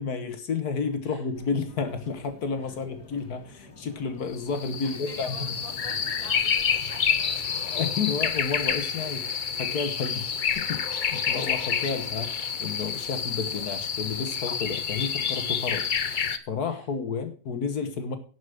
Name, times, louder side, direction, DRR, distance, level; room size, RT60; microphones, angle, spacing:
voice 1, 0.0-5.6 7.6-10.3 10.6-15.9 16.5-18.2, left 5 dB, 65° left, 8 dB, 1.8 m, -31 dB
sound 1, 1.3-6.3, left 3 dB, 85° left, 2.3 m, -50 dB
sound 2, 4.3-16.4, left 6 dB, 50° left, 0.6 m, -28 dB
voice 2, 4.8-7.4 16.7-16.9, right 1 dB, 25° right, 4 dB, 1.7 m, -46 dB
11.5 x 6.2 x 6.4 m, 0.40 s
omnidirectional pair, 1.7 m